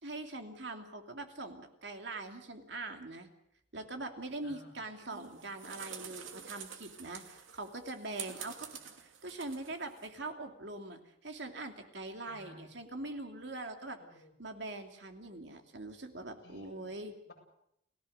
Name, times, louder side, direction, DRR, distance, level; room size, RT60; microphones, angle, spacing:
voice 1, 0.0-3.3 3.7-8.7 9.0-14.0 14.4-17.1, right 2 dB, 65° right, 5 dB, 2.7 m, -43 dB
voice 2, 4.4-4.8 8.7-8.8 12.3-12.7 14.0-14.4 16.4-16.9 17.3-17.4, left 1 dB, 55° left, 0 dB, 8.0 m, -55 dB
sound 1, 5.1-10.1, right 7 dB, 85° right, 2.5 m, -48 dB
30.0 x 18.0 x 6.6 m, 0.78 s
head